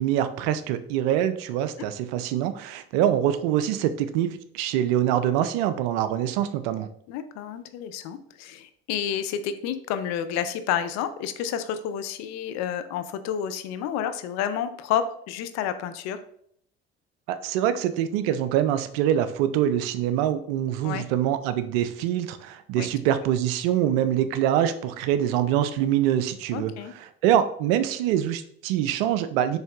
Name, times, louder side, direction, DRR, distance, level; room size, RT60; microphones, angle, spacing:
voice 1, 0.0-6.9 17.3-26.7 27.2-29.6, right 11 dB, 70° right, 12 dB, 0.4 m, -24 dB
voice 2, 7.1-16.2 20.8-21.1 22.8-22.9 26.5-26.9, left 9 dB, 60° left, 11 dB, 0.5 m, -30 dB
4.3 x 3.2 x 2.3 m, 0.66 s
hypercardioid pair, 60°, 31 cm